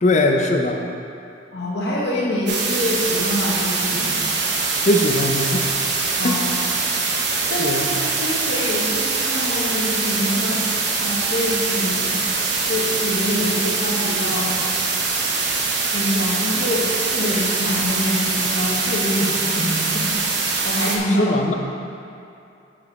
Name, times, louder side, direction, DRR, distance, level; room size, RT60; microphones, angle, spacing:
voice 1, 0.0-0.8 4.8-5.8 6.2-6.4 7.6-7.9 21.2-21.5, left 1 dB, 40° left, 3 dB, 0.5 m, -20 dB
voice 2, 1.5-4.2 6.2-6.5 7.3-10.6 11.0-12.2 12.6-14.6 15.9-20.1 20.6-21.4, left 1 dB, 65° left, -5 dB, 1.2 m, -25 dB
sound 1, 2.5-21.0, right 4 dB, 70° right, 0.9 m, -23 dB
7.1 x 5.1 x 4.7 m, 2.6 s
head